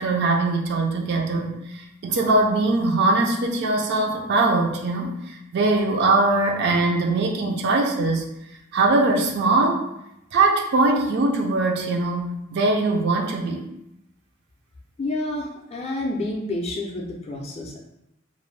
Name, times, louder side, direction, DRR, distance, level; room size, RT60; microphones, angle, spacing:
voice 1, 0.0-8.3 8.7-9.8 10.3-13.6, right 2 dB, 55° right, 1 dB, 0.4 m, -21 dB
voice 2, 15.0-17.8, left 2 dB, 30° left, -1 dB, 0.3 m, -29 dB
2.5 x 2.0 x 3.1 m, 0.84 s
head